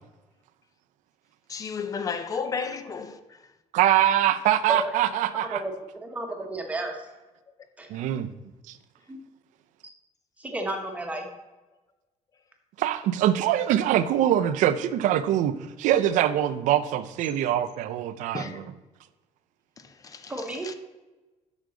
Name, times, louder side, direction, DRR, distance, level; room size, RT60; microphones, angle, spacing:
voice 1, 1.5-3.2 7.9-8.0 18.3-18.7 19.8-20.3 20.6-20.7, left 5 dB, 25° left, 0.6 m, -33 dB
voice 2, 3.7-5.6 7.9-8.3 8.7-8.8 12.8-18.6, right 11 dB, 80° right, 0.6 m, -23 dB
voice 3, 5.3-5.7 6.0-7.0 7.8-7.9 9.1-9.2 10.4-11.2 20.3-20.7, right 2 dB, 10° right, 1.1 m, -32 dB
8.3 x 6.3 x 3.8 m
cardioid pair, 160°, 13 cm